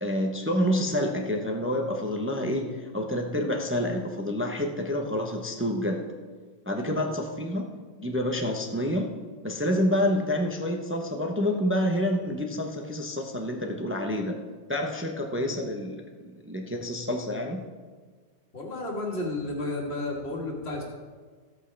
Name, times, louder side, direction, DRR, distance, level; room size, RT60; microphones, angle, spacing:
voice 1, 0.0-6.1 6.7-7.7 8.0-9.1 9.4-14.4 14.7-17.6, left 1 dB, 15° right, 2 dB, 0.5 m, -28 dB
voice 2, 18.5-20.8, left 2 dB, 40° left, -1 dB, 2.2 m, -32 dB
15.0 x 8.2 x 3.4 m, 1.5 s
omnidirectional pair, 1.6 m